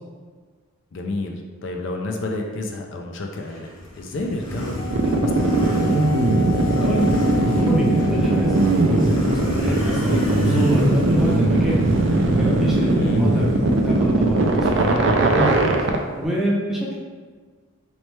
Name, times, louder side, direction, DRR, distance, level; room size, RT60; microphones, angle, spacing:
voice 1, 0.9-3.7 4.0-6.0 13.0-13.3, left 2 dB, 55° left, 2 dB, 0.4 m, -30 dB
Motorcycle, 3.5-16.2, equal, 85° left, 1.3 m, -28 dB
Wind instrument woodwind instrument, 4.7-8.9, left 9 dB, 40° left, 0.8 m, -34 dB
sound 1, 4.9-16.0, right 2 dB, 55° right, 0.4 m, -19 dB
voice 2, 6.8-7.1 7.6-11.9 12.4-16.9, equal, ahead, -5 dB, 0.5 m, -26 dB
4.1 x 3.1 x 3.2 m, 1.5 s
head